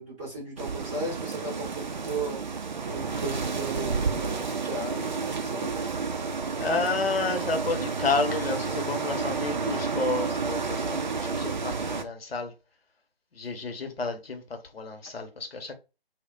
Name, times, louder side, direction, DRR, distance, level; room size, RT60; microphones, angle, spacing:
voice 1, 0.0-2.4 2.9-5.9, right 2 dB, 10° right, 0.7 m, -36 dB
sound 1, 0.6-12.0, right 5 dB, 50° right, 0.4 m, -31 dB
voice 2, 6.6-12.5 13.3-15.7, left 3 dB, 70° left, 0.8 m, -30 dB
2.1 x 2.1 x 3.7 m
figure-of-eight pair, 145°, 31 cm